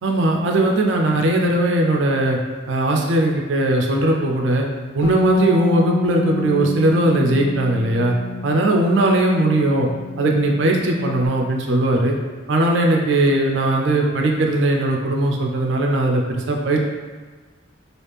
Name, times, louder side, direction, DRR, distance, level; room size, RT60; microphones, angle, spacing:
voice 1, 0.0-2.4 2.7-4.7 4.9-8.1 8.4-9.9 10.2-12.1 12.5-16.8, right 1 dB, 70° right, 1 dB, 0.4 m, -19 dB
Bass guitar, 5.0-11.3, left 1 dB, 35° left, 0.5 m, -29 dB
3.2 x 2.4 x 3.3 m, 1.4 s
head